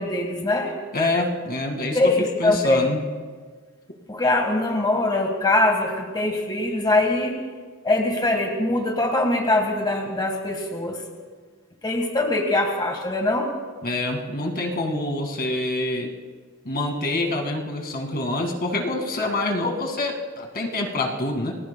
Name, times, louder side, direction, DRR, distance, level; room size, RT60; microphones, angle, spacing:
voice 1, 0.0-0.7 1.9-2.9 4.1-7.4 7.8-11.0 11.8-13.5, left 2 dB, 20° left, 1 dB, 1.6 m, -22 dB
voice 2, 0.9-3.0 13.8-16.1 16.6-21.5, left 2 dB, 45° left, 2 dB, 2.1 m, -26 dB
29.5 x 20.5 x 2.3 m, 1.5 s
head